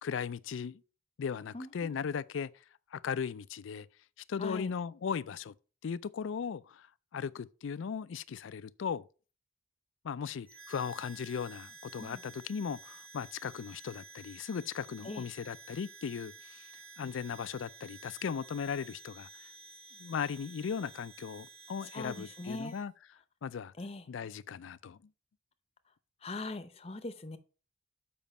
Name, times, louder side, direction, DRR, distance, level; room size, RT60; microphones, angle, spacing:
voice 1, 0.0-0.8 1.2-2.5 2.9-3.9 4.3-5.5 5.8-6.9 7.1-9.0 10.0-16.7 17.0-19.3 20.0-22.9 23.4-23.7 24.1-25.0, left 6 dB, 80° left, 0.4 m, -37 dB
voice 2, 1.5-2.0 4.4-4.7 12.0-12.2 15.0-15.2 21.9-22.7 23.8-24.1 26.2-27.4, left 2 dB, 30° left, 0.7 m, -41 dB
Harmonica, 10.4-22.9, right 3 dB, 80° right, 3.6 m, -52 dB
7.1 x 5.1 x 5.4 m
head